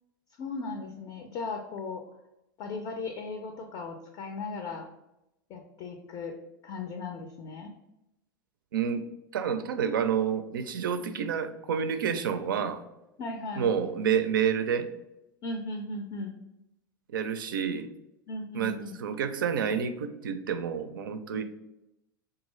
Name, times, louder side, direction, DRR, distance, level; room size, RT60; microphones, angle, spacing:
voice 1, 0.4-2.0 2.6-4.9 5.5-6.3 6.6-7.7 13.2-13.7 15.4-16.4 18.3-19.0 21.3-21.4, left 3 dB, 40° left, 5 dB, 0.4 m, -37 dB
voice 2, 8.7-9.0 9.3-12.8 13.6-14.9 17.1-17.9 18.5-21.4, right 7 dB, 75° right, 9 dB, 0.4 m, -29 dB
3.7 x 2.3 x 3.1 m, 0.87 s
figure-of-eight pair, 80°, 11 cm